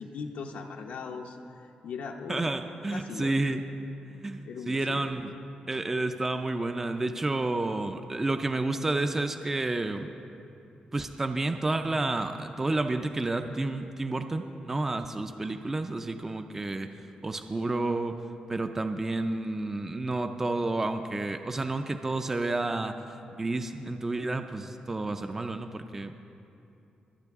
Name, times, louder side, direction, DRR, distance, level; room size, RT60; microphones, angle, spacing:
voice 1, 0.0-1.4 1.8-2.6 2.9-3.6 4.5-5.1, left 5 dB, 85° left, 2 dB, 0.7 m, -39 dB
voice 2, 2.3-3.7 4.1-5.3 5.7-10.1 10.9-16.9 17.2-18.2 18.5-23.0 23.3-26.2, right 2 dB, 15° right, 7 dB, 0.4 m, -30 dB
24.0 x 9.0 x 3.5 m, 2.8 s
wide cardioid pair, 175°, 3 cm